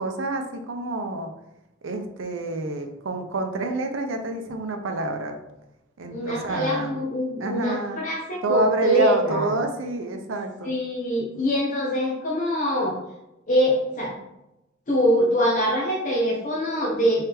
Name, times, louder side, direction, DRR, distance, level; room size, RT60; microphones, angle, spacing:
voice 1, 0.0-1.3 1.8-5.4 6.0-7.0 7.4-8.0 8.4-10.7, right 2 dB, 70° right, 5 dB, 0.5 m, -27 dB
voice 2, 6.1-9.5 10.6-13.0 13.5-14.1 14.9-17.2, equal, 40° left, -4 dB, 0.8 m, -24 dB
3.5 x 3.3 x 2.9 m, 0.92 s
head